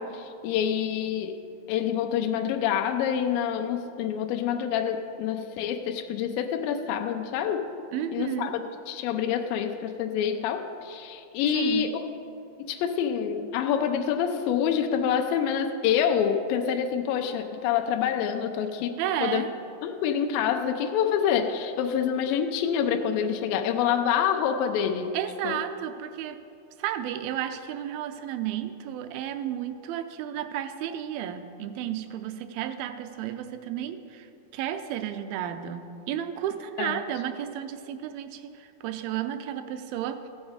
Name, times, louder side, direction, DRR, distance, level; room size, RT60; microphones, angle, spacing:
voice 1, 0.0-1.4 1.7-7.7 8.1-12.1 12.7-19.4 19.8-25.2 25.4-25.6 36.8-37.0, left 8 dB, 80° left, 5 dB, 2.3 m, -27 dB
voice 2, 7.9-8.6 11.5-11.9 19.0-19.5 25.1-26.4 26.8-34.3 34.5-40.3, right 10 dB, 85° right, 9 dB, 2.4 m, -32 dB
15.0 x 7.2 x 4.9 m, 2.5 s
omnidirectional pair, 4.2 m